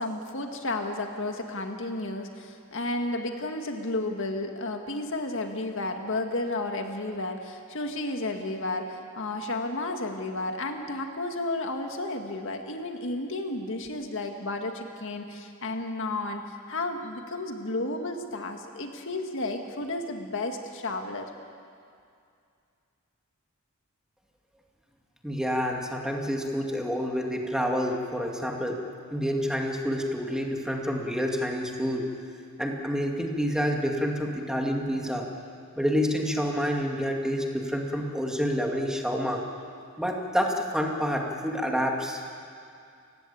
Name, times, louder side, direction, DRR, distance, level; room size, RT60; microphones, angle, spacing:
voice 1, 0.0-21.3, left 2 dB, 65° left, 4 dB, 1.9 m, -32 dB
voice 2, 25.2-28.8 29.1-32.1 32.6-35.3 35.8-39.4 40.0-42.2, equal, 5° right, 1 dB, 2.3 m, -28 dB
29.5 x 16.0 x 8.6 m, 2.4 s
head